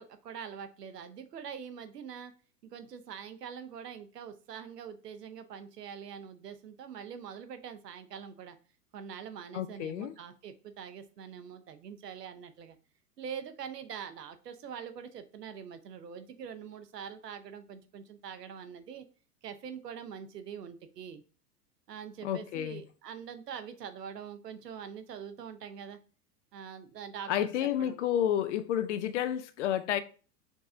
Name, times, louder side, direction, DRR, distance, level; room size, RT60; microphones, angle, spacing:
voice 1, 0.0-2.3 2.7-8.6 8.9-12.8 13.2-19.0 19.4-21.2 21.9-26.0 26.5-27.3 27.6-28.0, right 7 dB, 80° right, 0.7 m, -44 dB
voice 2, 9.5-10.1 22.2-22.8 27.3-30.0, left 10 dB, 50° left, 0.5 m, -30 dB
5.2 x 3.1 x 2.5 m
figure-of-eight pair, 95°, 48 cm